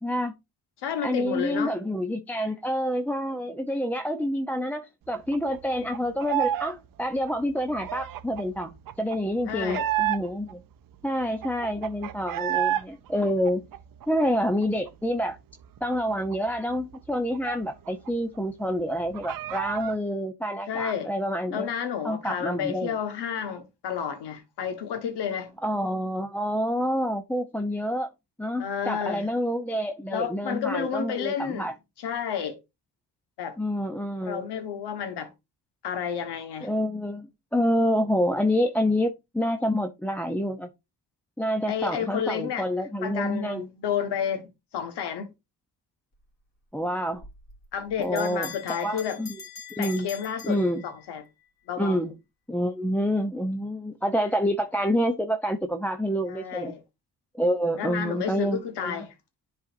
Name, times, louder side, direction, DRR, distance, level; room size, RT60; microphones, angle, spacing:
voice 1, 0.0-0.3 1.0-10.6 11.0-13.6 14.1-15.4 15.8-21.7 22.0-22.9 25.6-28.1 28.4-31.7 33.6-34.5 36.6-40.7 41.4-43.7 46.7-47.2 48.0-49.4 49.7-50.1 50.4-50.8 51.8-52.1 52.5-56.8 57.3-59.1, equal, 5° left, 0.6 m, -27 dB
voice 2, 0.8-1.7 9.5-9.9 20.7-21.1 21.5-25.6 28.6-29.2 30.1-31.7 32.0-32.6 33.4-33.5 34.2-35.3 35.8-36.7 41.7-42.7 43.0-45.3 47.7-49.2 49.8-51.2 51.7-52.0 56.3-56.8 57.6-59.1, left 8 dB, 75° left, 1.4 m, -31 dB
Chicken clucking, 5.1-6.7 7.0-10.5 10.9-11.0 11.2-12.8 13.2-14.9 15.2-15.3 15.6-18.1 18.4-18.5 18.8-20.0, right 12 dB, 55° right, 0.6 m, -31 dB
Bell, 47.2-51.3, left 5 dB, 40° left, 2.7 m, -43 dB
10.0 x 4.2 x 2.6 m
cardioid pair, 85°, 40 cm